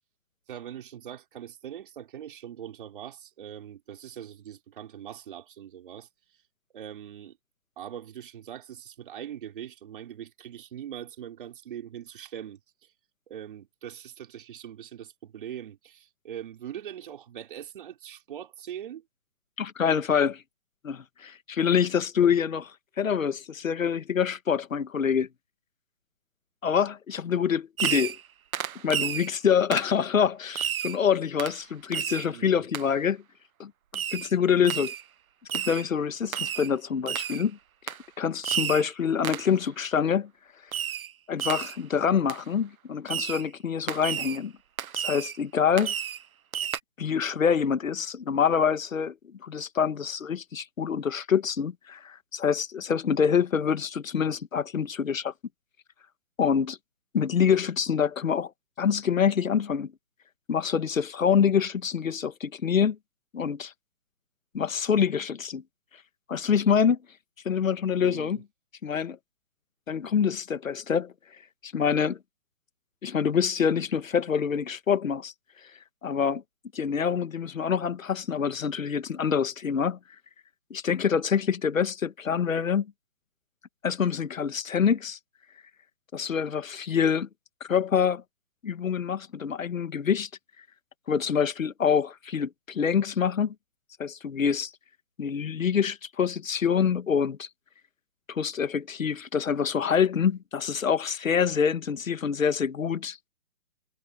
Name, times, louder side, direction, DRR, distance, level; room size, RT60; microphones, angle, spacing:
voice 1, 0.5-6.1 6.7-7.4 7.8-12.6 13.3-19.0 32.2-32.7 68.0-68.4, right 10 dB, 40° right, 3.5 m, -42 dB
voice 2, 19.6-20.4 20.8-22.7 23.0-25.3 26.6-28.2 28.8-33.2 33.6-33.7 34.1-34.9 35.5-37.6 37.9-40.3 41.3-44.5 44.9-45.9 47.0-49.1 49.4-55.3 56.4-56.8 57.1-58.5 58.8-59.9 60.5-63.0 63.3-63.7 64.5-65.6 66.3-67.0 67.4-68.4 68.8-69.2 69.9-71.1 71.6-72.2 73.0-75.3 76.0-76.4 76.7-80.0 80.7-82.9 83.8-85.2 86.1-87.3 87.6-88.2 88.6-90.3 91.1-93.5 94.0-94.7 95.2-97.5 98.3-103.2, left 7 dB, 70° left, 1.7 m, -26 dB
Fireworks, 27.8-28.3 28.5-29.3 29.7-29.9 30.6-31.0 31.4-31.6 31.9-32.3 32.7-32.9 33.9-34.3 34.7-35.0 35.5-35.9 36.3-36.7 37.1-37.4 37.9-38.0 38.4-38.9 39.2-39.5 40.7-41.1 41.4-41.8 42.3-42.4 43.1-43.5 43.9-44.4 44.8-45.4 45.8-46.2 46.5-46.8, right 9 dB, 85° right, 0.7 m, -31 dB
hypercardioid pair, 165°, 41 cm